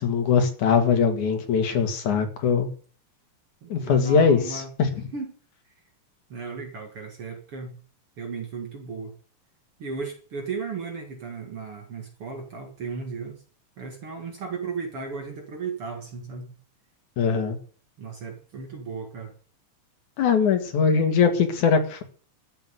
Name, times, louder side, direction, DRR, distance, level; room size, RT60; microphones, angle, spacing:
voice 1, 0.0-2.7 3.7-4.9 17.2-17.6 20.2-22.0, left 6 dB, 75° left, 6 dB, 3.4 m, -21 dB
voice 2, 3.6-4.7 5.1-5.4 6.3-7.8 8.2-9.1 9.8-13.4 13.8-16.5 18.0-19.3, right 4 dB, 50° right, 3 dB, 2.7 m, -35 dB
12.5 x 7.5 x 9.3 m, 0.42 s
omnidirectional pair, 3.5 m